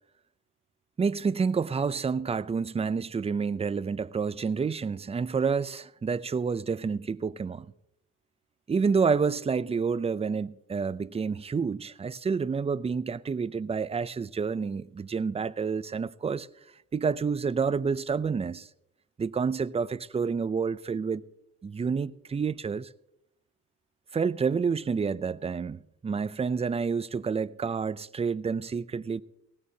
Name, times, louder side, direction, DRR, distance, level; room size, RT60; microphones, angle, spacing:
voice 1, 1.0-7.7 8.7-16.5 16.9-18.7 19.2-21.2 21.6-22.9 24.1-29.2, right 5 dB, 20° right, 0.5 m, -29 dB
19.0 x 16.5 x 2.8 m
cardioid pair, 90°, 30 cm